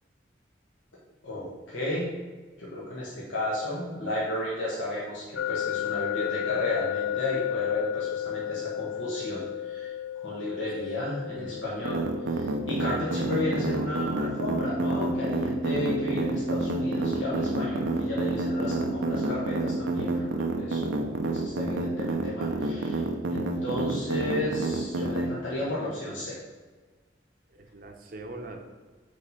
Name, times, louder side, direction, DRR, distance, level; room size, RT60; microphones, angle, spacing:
voice 1, 1.2-2.1 2.6-9.9 10.2-26.3, left 1 dB, 90° left, -6 dB, 1.4 m, -33 dB
sound 1, 5.4-18.3, left 11 dB, 70° left, 0.4 m, -35 dB
voice 2, 11.3-11.7 25.5-25.6 27.5-28.6, right 2 dB, 50° right, 4 dB, 0.8 m, -42 dB
sound 2, 11.8-25.3, right 3 dB, 90° right, 0.6 m, -29 dB
Organ, 14.4-21.0, left 1 dB, 5° left, 0.7 m, -35 dB
5.3 x 3.8 x 5.5 m, 1.3 s
head